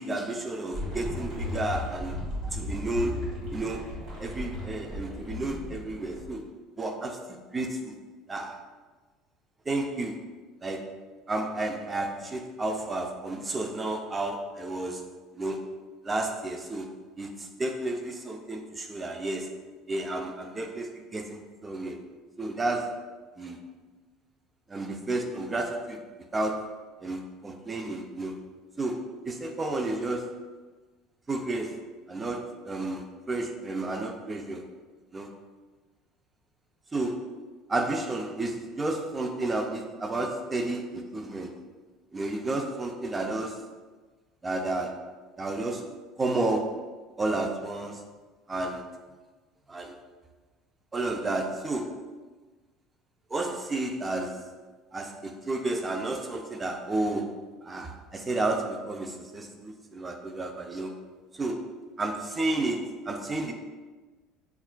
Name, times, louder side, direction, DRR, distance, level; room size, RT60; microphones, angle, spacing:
voice 1, 0.0-2.2 2.4-6.4 6.8-8.0 8.3-8.6 9.7-10.2 10.6-10.9 11.3-15.0 15.3-15.7 16.0-16.9 17.2-19.5 19.9-22.0 22.4-23.6 24.7-26.0 26.3-26.7 27.0-28.4 28.8-30.3 31.3-31.8 32.1-34.6 35.1-35.3 36.9-37.3 37.7-41.5 42.1-43.6 44.4-45.1 45.4-45.9 46.2-46.9 47.2-48.0 48.5-48.9 49.7-49.9 50.9-52.0 53.3-54.4 54.9-60.9 61.3-61.7 62.0-63.5, right 2 dB, 15° right, 4 dB, 0.4 m, -32 dB
sound 1, 0.7-6.5, left 2 dB, 45° right, 1.4 m, -36 dB
5.2 x 2.4 x 2.2 m, 1.3 s
cardioid pair, 125°, 0 cm